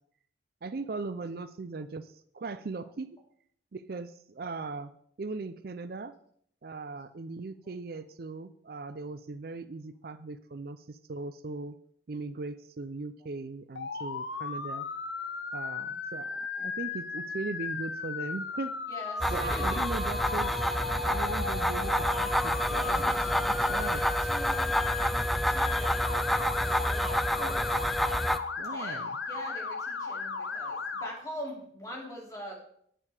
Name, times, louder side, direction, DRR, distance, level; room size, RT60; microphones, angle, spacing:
voice 1, 0.6-3.2 3.7-4.9 5.2-6.1 6.6-11.8 12.1-14.9 15.5-18.7 19.3-20.5 21.1-23.1 23.4-24.0 28.6-29.2, right 3 dB, 55° right, 13 dB, 0.5 m, -39 dB
Motor vehicle (road) / Siren, 13.8-31.1, left 5 dB, 85° left, 1.0 m, -36 dB
voice 2, 18.9-19.8 22.8-24.7 24.9-27.6 28.7-32.6, equal, 20° left, -2 dB, 2.9 m, -43 dB
sound 1, 19.2-28.4, equal, ahead, 0.4 m, -28 dB
10.0 x 8.6 x 4.9 m, 0.66 s
head